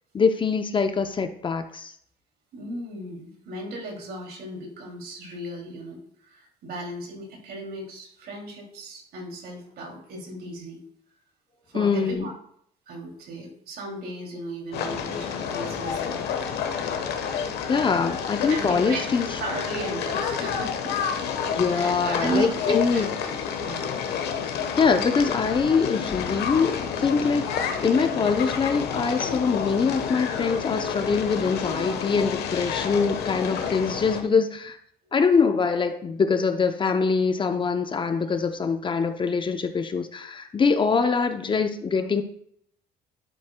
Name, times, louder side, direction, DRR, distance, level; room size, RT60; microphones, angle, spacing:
voice 1, 0.1-1.9 11.7-12.3 17.7-19.3 21.5-23.1 24.8-34.8 35.1-42.2, left 5 dB, 30° left, 8 dB, 0.6 m, -23 dB
voice 2, 2.5-10.8 11.7-12.3 12.9-16.3 18.5-21.0 21.7-23.9, right 2 dB, 65° right, 1 dB, 2.6 m, -36 dB
sound 1, 14.7-34.2, left 7 dB, 75° left, 1.1 m, -29 dB
sound 2, 25.2-29.4, left 5 dB, 50° left, 1.1 m, -46 dB
11.0 x 7.7 x 2.2 m, 0.67 s
cardioid pair, 110°, 17 cm